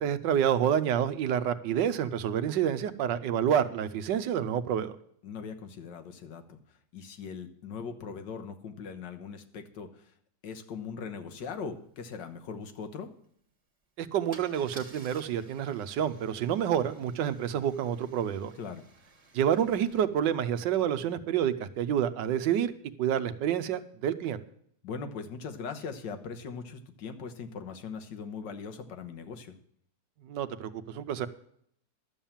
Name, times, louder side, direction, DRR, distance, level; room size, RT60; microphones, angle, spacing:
voice 1, 0.0-5.0 14.0-18.5 19.3-22.7 23.0-24.4 30.2-31.3, right 9 dB, 85° right, 12 dB, 1.4 m, -28 dB
voice 2, 5.2-10.1 10.4-13.1 18.5-18.9 24.8-29.6, left 5 dB, 85° left, 8 dB, 1.8 m, -40 dB
Car / Engine starting / Idling, 11.7-11.8 12.1-12.3 14.3-20.0, right 3 dB, 20° right, 1.4 m, -54 dB
12.0 x 7.2 x 7.2 m, 0.68 s
omnidirectional pair, 1.9 m